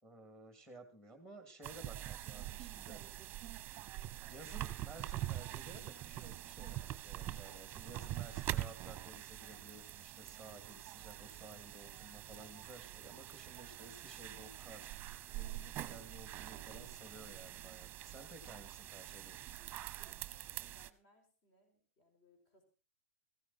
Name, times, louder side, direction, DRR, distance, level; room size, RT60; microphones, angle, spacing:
voice 1, 0.0-3.0 4.3-14.9 15.3-19.6, right 1 dB, 5° left, 7 dB, 2.9 m, -55 dB
sound 1, 1.6-20.9, right 14 dB, 25° right, 1.0 m, -45 dB
voice 2, 20.0-22.6, left 2 dB, 40° left, 5 dB, 4.9 m, -69 dB
15.5 x 14.0 x 4.3 m, 0.35 s
hypercardioid pair, 135°, 8 cm